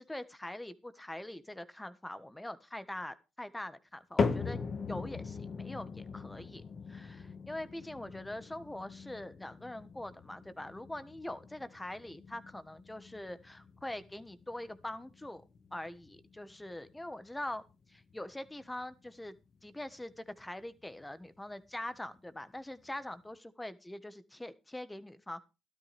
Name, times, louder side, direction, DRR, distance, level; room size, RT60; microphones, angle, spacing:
voice 1, 0.0-6.6 6.9-15.4 15.7-19.4 19.6-25.4, left 1 dB, 10° left, 13 dB, 1.4 m, -43 dB
sound 1, 4.2-20.5 20.8-21.3 21.9-22.0 22.8-22.9, left 5 dB, 45° left, 1.6 m, -41 dB
13.5 x 12.5 x 3.5 m, 0.29 s
cardioid pair, 90°, 0 cm